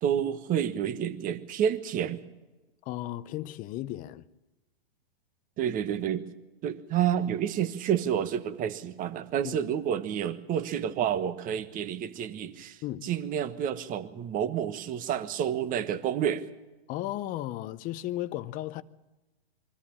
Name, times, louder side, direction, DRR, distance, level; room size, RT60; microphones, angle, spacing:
voice 1, 0.0-2.2 5.6-6.3 6.6-16.4, right 9 dB, 25° right, 1.3 m, -29 dB
voice 2, 2.9-4.2 9.4-9.6 12.8-13.0 16.9-18.8, left 14 dB, 25° left, 0.7 m, -35 dB
23.5 x 14.0 x 8.7 m
hypercardioid pair, 125°, 31 cm